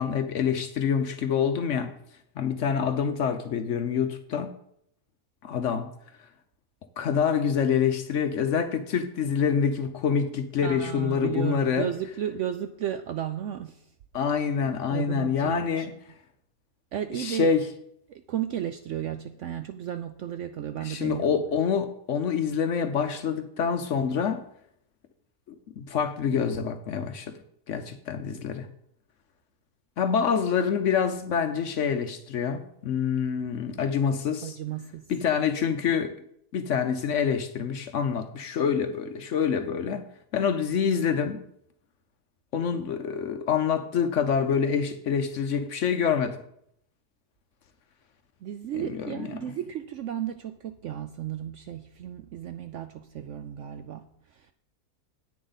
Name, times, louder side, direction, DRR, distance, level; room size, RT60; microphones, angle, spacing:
voice 1, 0.0-1.9 2.4-4.5 5.4-5.9 7.0-11.9 14.1-15.9 17.1-17.6 20.8-24.4 25.8-27.4 27.7-28.7 30.0-34.6 35.1-36.1 36.5-40.0 40.3-41.4 42.5-46.4 48.8-49.1, left 7 dB, 60° left, 0.9 m, -26 dB
voice 2, 10.6-13.8 14.5-15.9 16.9-17.5 18.1-21.3 34.4-35.1 48.4-54.5, right 10 dB, 70° right, 0.7 m, -34 dB
10.0 x 8.6 x 4.0 m
omnidirectional pair, 1.7 m